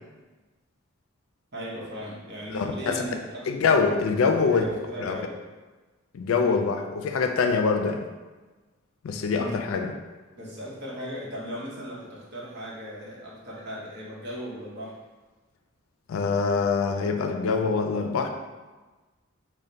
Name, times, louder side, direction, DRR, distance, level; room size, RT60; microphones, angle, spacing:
voice 1, 1.5-3.5 4.4-5.4 6.3-6.6 9.4-9.6 10.3-15.0, equal, 55° right, -5 dB, 0.9 m, -37 dB
voice 2, 2.5-3.0 3.4-4.6 5.0-5.2 6.1-8.1 9.0-9.9 16.1-18.3, left 5 dB, 80° left, 5 dB, 0.3 m, -24 dB
3.2 x 2.1 x 3.9 m, 1.2 s
head